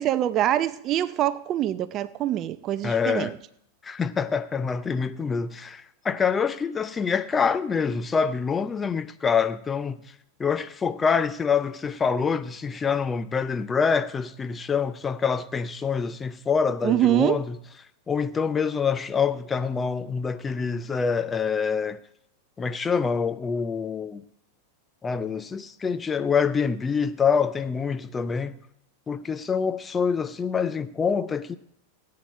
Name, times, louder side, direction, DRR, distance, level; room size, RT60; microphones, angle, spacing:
voice 1, 0.0-3.4 16.8-17.4, right 12 dB, 35° right, 0.4 m, -24 dB
voice 2, 2.8-3.3 3.8-10.0 10.4-17.6 18.1-22.0 22.6-24.2 25.0-28.6 29.1-31.6, left 6 dB, 15° left, 0.5 m, -26 dB
17.0 x 8.7 x 4.4 m
figure-of-eight pair, 90°, 0 cm